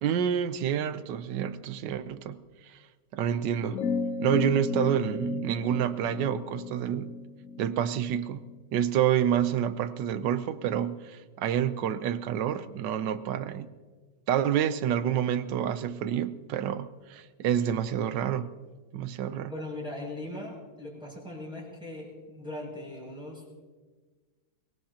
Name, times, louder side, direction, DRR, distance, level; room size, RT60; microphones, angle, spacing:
voice 1, 0.0-2.4 2.7-2.8 3.1-3.8 4.2-7.1 7.6-8.4 8.7-13.7 14.3-18.5 18.9-19.5, right 9 dB, 65° right, 12 dB, 1.2 m, -28 dB
sound 1, 3.7-8.6, left 4 dB, 80° left, 0.7 m, -34 dB
voice 2, 19.5-23.4, left 1 dB, ahead, -4 dB, 6.3 m, -39 dB
23.5 x 19.0 x 2.9 m, 1.4 s
omnidirectional pair, 2.3 m